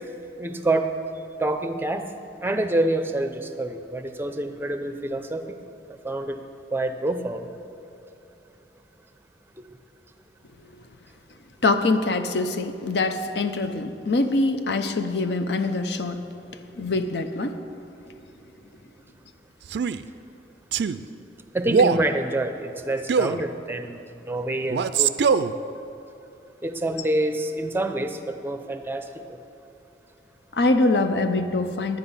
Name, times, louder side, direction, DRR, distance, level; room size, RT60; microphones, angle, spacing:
voice 1, 0.4-0.9 1.4-2.1 2.4-5.6 5.9-6.4 6.7-7.5 9.6-9.7 21.5-24.0 24.2-25.2 26.6-29.4, right 1 dB, 15° right, 8 dB, 0.5 m, -27 dB
voice 2, 11.6-16.2 16.8-17.5 30.5-32.0, left 2 dB, 70° left, 8 dB, 0.7 m, -24 dB
Male speech man speaking, 19.7-20.0 20.7-21.0 21.7-22.1 23.1-23.4 24.7-25.5, right 6 dB, 70° right, 0.3 m, -21 dB
10.5 x 10.0 x 5.5 m, 2.9 s
head